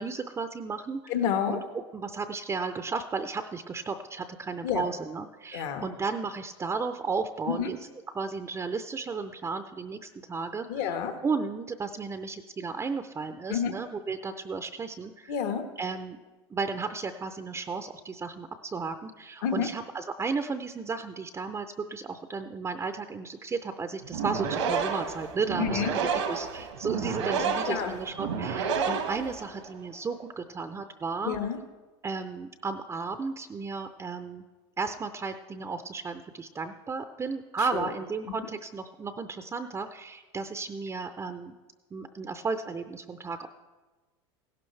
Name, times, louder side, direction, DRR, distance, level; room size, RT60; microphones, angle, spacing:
voice 1, 0.0-1.1 1.5-1.6 1.9-7.8 8.2-10.9 11.2-15.3 15.8-16.2 16.5-31.5 32.0-34.4 34.8-41.5 41.9-43.5, right 4 dB, 20° right, 8 dB, 0.6 m, -34 dB
voice 2, 1.1-1.6 4.6-4.8 5.5-5.9 7.5-7.7 10.7-11.1 13.5-13.7 15.3-15.6 19.4-19.7 25.6-25.9 27.7-27.9 31.2-31.6 37.7-37.9, left 8 dB, 60° left, 6 dB, 1.4 m, -29 dB
sound 1, 24.0-29.8, right 6 dB, 85° right, 1.6 m, -30 dB
16.0 x 12.0 x 3.3 m, 1.3 s
hypercardioid pair, 100°, 14 cm